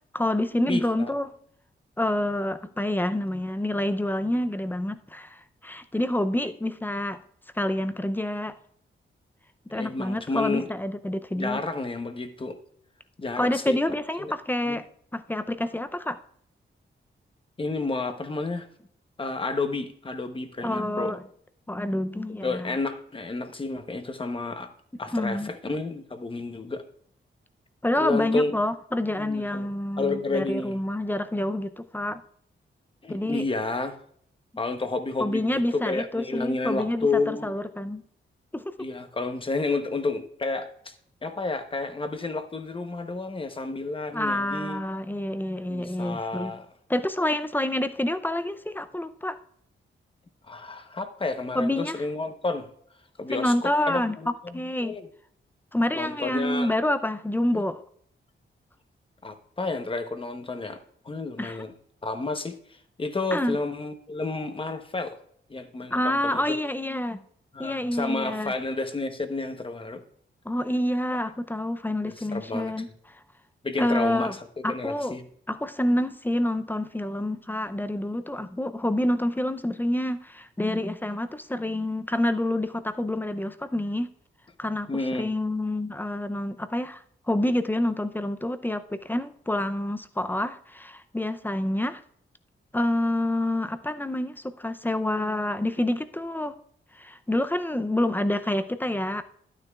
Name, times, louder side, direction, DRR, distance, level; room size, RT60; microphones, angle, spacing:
voice 1, 0.1-1.3 2.0-7.2 7.6-8.5 9.7-11.6 13.4-14.9 15.1-16.2 20.6-21.2 21.7-22.7 25.1-25.5 27.8-32.2 33.1-33.5 35.2-38.0 38.5-38.7 44.1-46.5 46.9-49.4 51.5-52.0 53.3-55.0 55.7-57.8 61.4-61.6 63.3-63.6 65.9-67.2 67.6-68.5 70.5-72.9 73.8-74.3 74.6-75.2 75.5-84.1 84.6-84.9 85.2-92.0 92.7-96.5 96.9-99.2, left 1 dB, 10° left, 10 dB, 0.5 m, -27 dB
voice 2, 0.7-1.1 6.4-6.5 9.7-10.7 11.4-12.6 13.2-13.8 14.2-14.3 14.6-14.8 17.6-18.7 19.2-21.2 22.4-24.7 25.0-26.8 28.0-28.5 29.2-29.7 30.0-30.8 33.0-34.0 34.6-37.5 38.8-40.9 41.2-44.8 45.7-46.7 50.5-52.7 53.2-55.1 55.9-56.7 57.5-57.6 59.2-61.7 62.0-65.2 65.5-66.4 67.5-70.0 72.2-72.7 73.6-75.3 84.9-85.3, left 3 dB, 25° left, 8 dB, 0.9 m, -31 dB
11.5 x 9.7 x 2.4 m, 0.64 s
wide cardioid pair, 115°, 20 cm